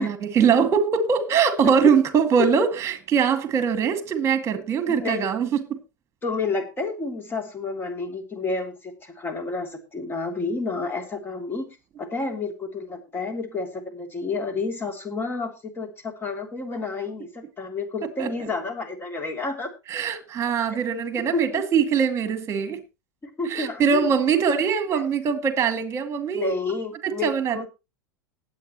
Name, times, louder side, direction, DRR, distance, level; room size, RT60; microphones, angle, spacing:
voice 1, 0.0-5.8 18.0-18.5 19.9-22.8 23.5-26.5 27.0-27.7, right 6 dB, 30° right, 2.2 m, -22 dB
voice 2, 4.9-5.3 6.2-19.7 21.3-21.6 23.2-24.4 24.9-25.0 26.3-27.7, left 3 dB, 20° left, 3.1 m, -30 dB
19.0 x 8.3 x 3.0 m
hypercardioid pair, 90°, 10 cm